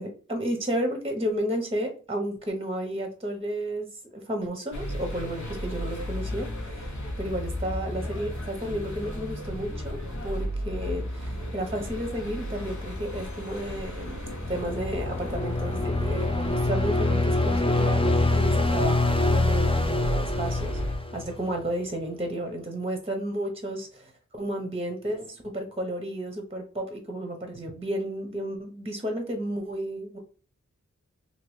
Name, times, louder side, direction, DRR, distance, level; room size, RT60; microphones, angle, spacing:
voice 1, 0.0-3.9 4.1-14.2 14.5-20.8 21.1-24.1 24.4-30.2, right 1 dB, 20° right, 4 dB, 0.8 m, -32 dB
sound 1, 4.7-21.0, equal, 75° left, 0.9 m, -34 dB
sound 2, 14.3-21.6, left 2 dB, 20° left, 0.4 m, -25 dB
3.0 x 2.7 x 3.1 m, 0.38 s
wide cardioid pair, 50°, 29 cm